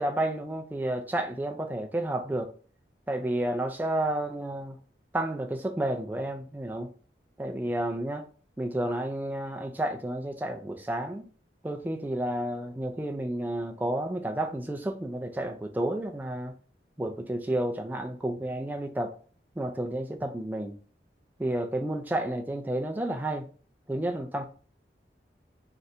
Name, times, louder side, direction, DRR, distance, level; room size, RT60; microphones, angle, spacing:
voice 1, 0.0-2.5 3.1-4.8 5.1-6.9 7.4-8.2 8.6-11.3 11.6-16.5 17.0-19.1 19.6-20.8 21.4-23.5 23.9-24.4, right 1 dB, 10° right, 0.3 m, -31 dB
2.7 x 2.5 x 3.1 m
head